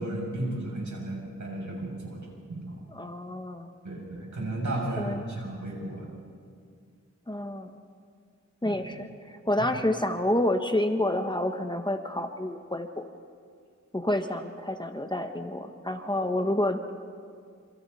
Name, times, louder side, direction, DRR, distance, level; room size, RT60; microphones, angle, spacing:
voice 1, 0.0-2.2 2.5-2.8 3.8-6.1 8.6-8.8, right 1 dB, 75° right, -3 dB, 7.6 m, -34 dB
voice 2, 2.9-3.7 5.0-5.3 7.3-7.8 8.6-13.0 13.9-16.8, left 1 dB, 15° left, 6 dB, 1.4 m, -29 dB
27.0 x 27.0 x 4.3 m, 2.2 s
wide cardioid pair, 75°, 30 cm